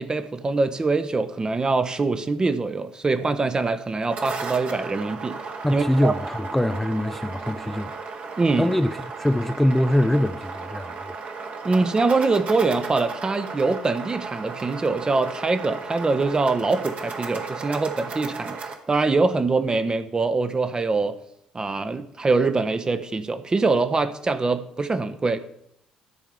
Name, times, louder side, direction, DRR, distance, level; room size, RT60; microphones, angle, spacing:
voice 1, 0.0-5.4 5.7-6.1 8.4-8.7 11.6-18.6 18.9-21.2 21.5-25.4, right 3 dB, 25° right, 0.9 m, -23 dB
sound 1, 3.9-18.7, right 4 dB, 45° right, 1.5 m, -35 dB
voice 2, 5.6-8.1 8.6-11.2, left 1 dB, 5° left, 0.5 m, -23 dB
12.5 x 4.8 x 7.0 m
figure-of-eight pair, 45°, 3 cm